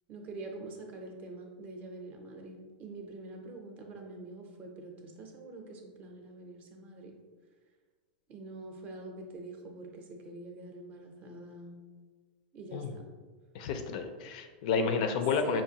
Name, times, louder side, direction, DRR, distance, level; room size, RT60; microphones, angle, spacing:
voice 1, 0.1-7.1 8.3-11.8 12.5-13.1 15.4-15.6, right 2 dB, 30° right, 2 dB, 0.5 m, -45 dB
voice 2, 13.5-15.6, left 5 dB, 50° left, 7 dB, 0.4 m, -30 dB
5.3 x 2.5 x 2.7 m, 1.5 s
supercardioid pair, 155°, 5 cm